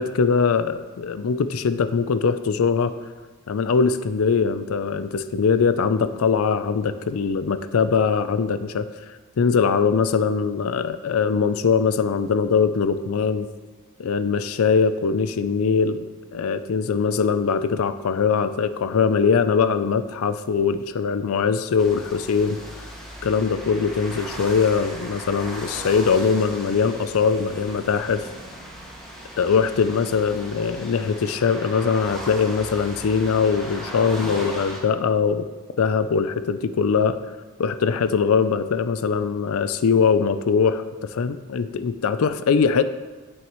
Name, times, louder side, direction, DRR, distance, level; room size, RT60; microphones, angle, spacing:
voice 1, 0.0-2.9 3.5-8.9 9.4-13.5 14.0-16.1 16.3-22.6 23.2-28.3 29.4-35.5 35.8-37.2 37.6-42.8, left 5 dB, 70° left, 13 dB, 0.4 m, -21 dB
sound 1, 21.8-34.8, equal, ahead, 1.9 m, -37 dB
17.0 x 6.2 x 3.1 m, 1.3 s
head